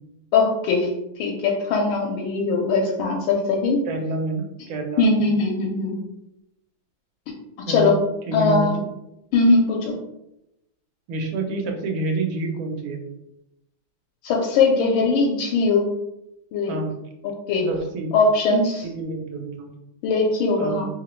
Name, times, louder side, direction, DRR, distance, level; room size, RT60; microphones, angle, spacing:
voice 1, 0.3-0.9 1.2-3.8 5.0-6.0 7.7-8.0 8.3-8.8 9.3-9.9 14.2-15.9 16.5-16.8 17.2-17.7 18.1-18.9 20.0-20.9, left 3 dB, 80° left, -1 dB, 1.4 m, -20 dB
voice 2, 3.8-5.2 7.7-7.9 8.3-8.9 11.1-13.0 16.7-16.9 17.6-18.1 18.8-19.7 20.6-20.8, right 2 dB, 90° right, 3 dB, 1.5 m, -28 dB
3.5 x 2.9 x 3.0 m, 0.86 s
omnidirectional pair, 2.2 m